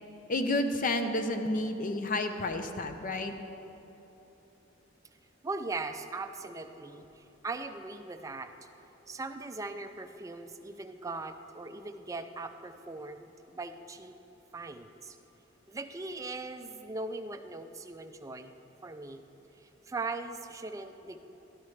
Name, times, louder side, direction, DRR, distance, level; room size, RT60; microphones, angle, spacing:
voice 1, 0.3-3.3, left 2 dB, 45° left, 7 dB, 0.6 m, -30 dB
voice 2, 5.4-8.5 9.1-14.1 14.5-15.2 15.7-18.5 18.8-19.2 19.9-21.2, right 3 dB, 15° right, 7 dB, 0.4 m, -39 dB
12.0 x 11.5 x 3.2 m, 3.0 s
head